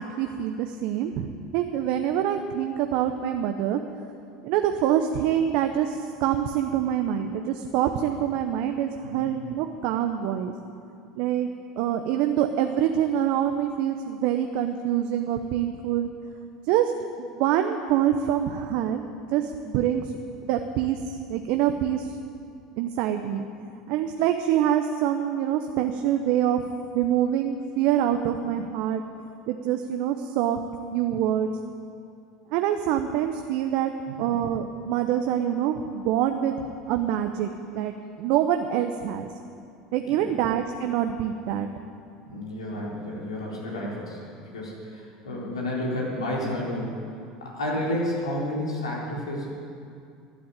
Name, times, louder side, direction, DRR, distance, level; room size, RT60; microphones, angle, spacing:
voice 1, 0.0-3.8 4.4-10.5 11.2-11.5 11.8-16.1 16.7-16.9 17.2-19.0 19.3-20.1 20.5-21.0 21.3-22.1 22.8-23.4 23.9-26.6 26.9-29.0 29.5-30.6 30.9-31.5 32.5-33.9 34.2-36.6 36.9-37.5 37.7-39.3 39.9-41.7, right 10 dB, 65° right, 6 dB, 0.7 m, -25 dB
voice 2, 42.2-46.9 47.4-49.5, left 1 dB, 90° left, -4 dB, 3.6 m, -31 dB
12.5 x 8.7 x 8.8 m, 2.4 s
hypercardioid pair, 80°, 3 cm